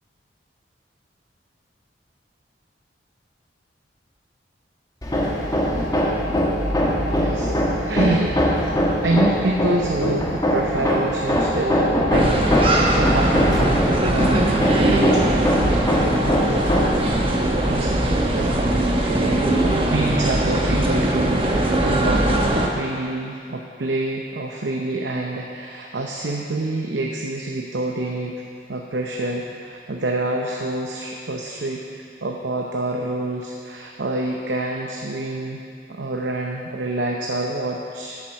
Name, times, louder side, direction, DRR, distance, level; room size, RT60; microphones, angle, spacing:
Hammer, 5.0-17.1, equal, 20° left, 1.2 m, -22 dB
voice 1, 7.2-8.4 8.6-16.5 17.7-17.9 18.3-28.4 28.7-31.8 32.2-35.6 35.9-38.2, right 2 dB, 75° right, 0 dB, 0.7 m, -27 dB
sound 1, 12.1-22.7, right 1 dB, 30° right, 0.9 m, -20 dB
8.8 x 7.5 x 6.5 m, 2.4 s
head